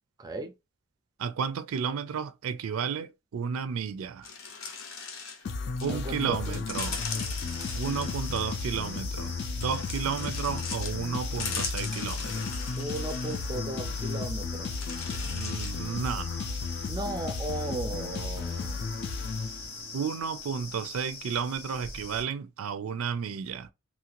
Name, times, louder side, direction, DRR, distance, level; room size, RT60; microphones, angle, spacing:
voice 1, 0.2-0.5 5.9-6.6 12.8-14.7 16.9-18.9, right 2 dB, 20° right, 0.4 m, -36 dB
voice 2, 1.2-4.3 5.8-7.0 7.7-12.5 15.2-16.5 19.9-23.7, right 6 dB, 90° right, 0.4 m, -32 dB
sound 1, 4.2-5.9 6.4-8.6 9.6-11.0 11.3-13.5 14.1-14.2 14.8-15.8, left 5 dB, 75° left, 0.8 m, -39 dB
sound 2, 5.4-20.0, left 4 dB, 55° left, 0.4 m, -34 dB
sound 3, 6.7-22.2, left 3 dB, 90° left, 1.4 m, -42 dB
3.1 x 2.4 x 2.8 m
head